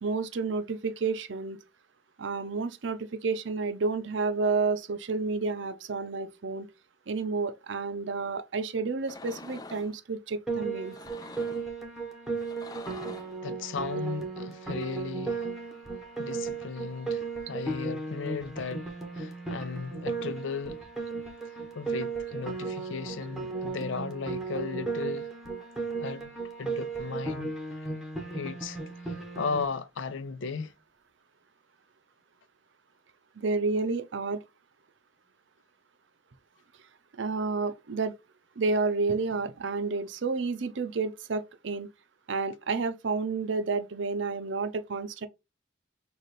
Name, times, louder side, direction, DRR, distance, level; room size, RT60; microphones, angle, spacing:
voice 1, 0.0-1.6 2.2-6.7 7.1-11.0 33.4-34.4 37.2-38.1 38.6-41.9 42.3-45.3, right 4 dB, 70° right, 0.6 m, -30 dB
sound 1, 9.0-9.9 10.8-11.7 12.4-13.4, left 3 dB, 20° left, 0.3 m, -46 dB
Piano, 10.5-29.7, right 4 dB, ahead, 1.0 m, -35 dB
voice 2, 13.4-15.5 16.2-20.8 21.7-25.3 26.0-26.3 26.6-27.9 28.3-28.8 29.1-30.7, left 5 dB, 75° left, 0.5 m, -36 dB
6.5 x 2.4 x 3.1 m
head